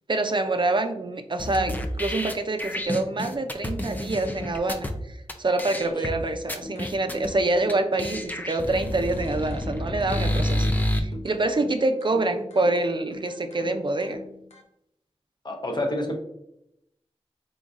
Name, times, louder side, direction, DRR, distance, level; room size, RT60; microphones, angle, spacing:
voice 1, 0.1-14.2, right 2 dB, 45° right, 7 dB, 0.4 m, -26 dB
sound 1, 1.4-4.9 5.3-5.4 5.6-6.1 6.5-7.3 7.7-7.8 8.0-11.0, left 1 dB, 15° left, 0.5 m, -29 dB
sound 2, 6.6-14.6, left 2 dB, 85° left, 0.8 m, -43 dB
voice 2, 15.4-16.2, left 1 dB, 40° left, 2 dB, 0.8 m, -29 dB
3.8 x 3.7 x 2.4 m, 0.81 s
wide cardioid pair, 50°, 11 cm